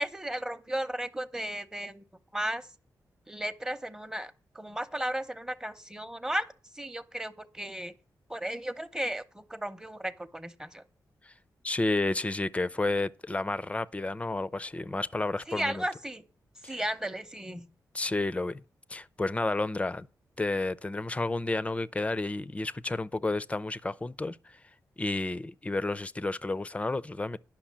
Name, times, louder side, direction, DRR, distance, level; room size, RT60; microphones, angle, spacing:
voice 1, 0.0-2.0 2.3-2.6 3.3-6.5 6.7-7.9 8.3-10.8 15.5-16.2 16.7-17.7, right 1 dB, 10° right, 0.8 m, -34 dB
voice 2, 11.6-15.8 16.6-16.8 17.9-18.6 18.9-20.1 20.4-24.6 25.0-27.4, left 2 dB, 20° left, 0.4 m, -31 dB
10.0 x 6.0 x 7.3 m
wide cardioid pair, 120°, 7 cm